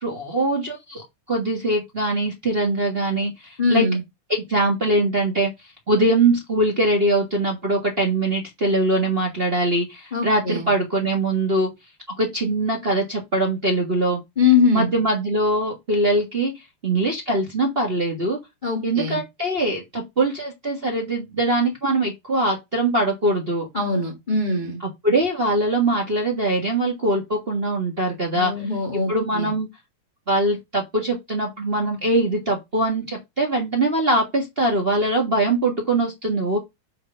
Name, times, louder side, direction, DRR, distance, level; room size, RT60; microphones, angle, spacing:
voice 1, 0.0-3.8 4.3-5.5 5.9-11.7 12.1-14.2 14.7-16.5 16.8-18.4 18.8-23.7 25.0-28.5 29.1-29.7 30.3-36.6, right 2 dB, 30° right, 1.2 m, -22 dB
voice 2, 3.6-4.0 10.1-10.7 14.4-14.9 18.6-19.2 23.7-24.8 28.3-29.5, left 4 dB, 35° left, 0.7 m, -22 dB
7.6 x 4.1 x 5.6 m
omnidirectional pair, 3.4 m